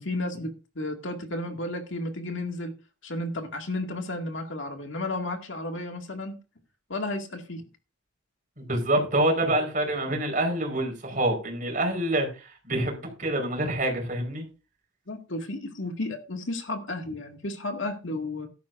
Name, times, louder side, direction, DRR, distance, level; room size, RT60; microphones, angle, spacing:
voice 1, 0.0-2.8 3.0-6.4 6.9-7.6 15.1-18.5, left 2 dB, 70° left, 4 dB, 2.0 m, -33 dB
voice 2, 8.6-14.4, right 1 dB, 40° right, 4 dB, 4.5 m, -26 dB
15.0 x 12.0 x 2.5 m, 0.32 s
head